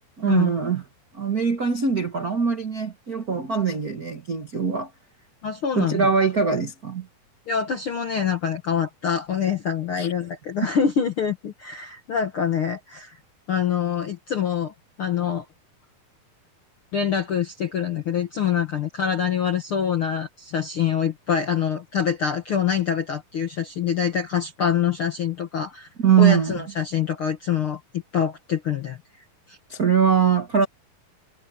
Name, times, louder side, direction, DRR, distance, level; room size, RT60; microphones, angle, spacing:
voice 1, 0.2-0.8 1.1-4.9 5.7-7.1 10.0-10.1 26.0-26.6 29.7-30.6, right 7 dB, 70° right, 0.8 m, -22 dB
voice 2, 5.4-6.1 7.5-13.2 13.5-14.7 15.0-15.4 16.9-25.9 26.2-27.8 28.1-29.0 29.5-29.6, left 7 dB, 65° left, 1.3 m, -25 dB
omnidirectional pair, 4.4 m